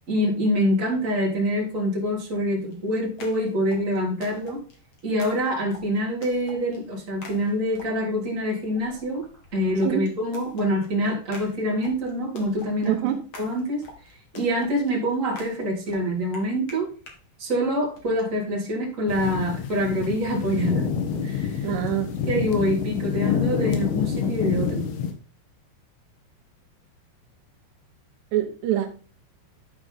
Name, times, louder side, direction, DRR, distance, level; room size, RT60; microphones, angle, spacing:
voice 1, 0.1-4.6 5.0-9.3 9.5-13.0 13.4-13.8 14.3-16.9 17.4-20.9 21.2-21.7 22.2-24.9, equal, 20° right, 2.8 m, -25 dB
sound 1, 2.7-8.2 8.7-17.2 18.0-18.2, left 2 dB, 45° left, 2.4 m, -46 dB
voice 2, 12.9-13.2 21.6-22.1 28.3-28.9, right 12 dB, 80° right, 3.1 m, -25 dB
sound 2, 19.1-25.1, left 7 dB, 70° left, 3.2 m, -27 dB
12.0 x 4.8 x 4.0 m
omnidirectional pair, 4.9 m